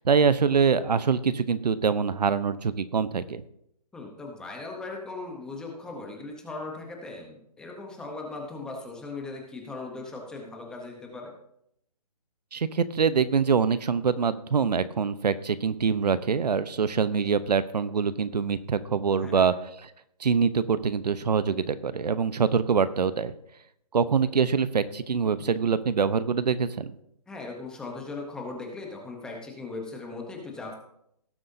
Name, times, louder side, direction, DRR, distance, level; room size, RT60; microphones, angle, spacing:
voice 1, 0.0-3.4 12.5-19.9 20.2-23.3 23.9-26.9, right 6 dB, 90° right, 14 dB, 0.8 m, -24 dB
voice 2, 3.9-11.3 19.2-19.5 27.3-30.7, left 3 dB, 5° left, 1 dB, 0.9 m, -38 dB
18.0 x 7.6 x 2.7 m, 0.76 s
hypercardioid pair, 165°, 20 cm